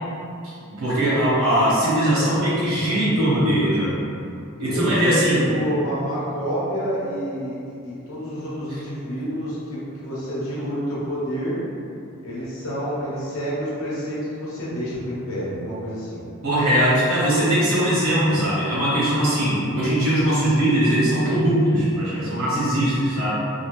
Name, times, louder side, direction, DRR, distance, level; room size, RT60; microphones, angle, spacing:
voice 1, 0.7-3.9 4.6-5.5 16.4-23.3, right 1 dB, 70° right, -8 dB, 1.1 m, -20 dB
voice 2, 4.7-5.2 5.5-7.6 7.8-11.6 12.2-16.3, equal, 70° left, -7 dB, 0.9 m, -28 dB
2.8 x 2.6 x 3.0 m, 2.6 s
head